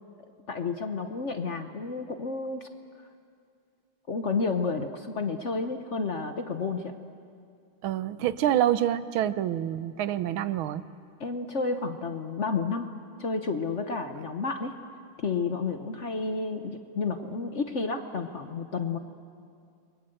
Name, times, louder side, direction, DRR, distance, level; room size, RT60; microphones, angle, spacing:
voice 1, 0.5-2.7 4.1-6.9 11.2-12.9 13.2-14.7 15.2-19.0, left 4 dB, 45° left, 7 dB, 1.0 m, -31 dB
voice 2, 7.8-10.8, right 11 dB, 90° right, 13 dB, 1.6 m, -27 dB
28.5 x 22.5 x 7.8 m, 2.3 s
omnidirectional pair, 2.2 m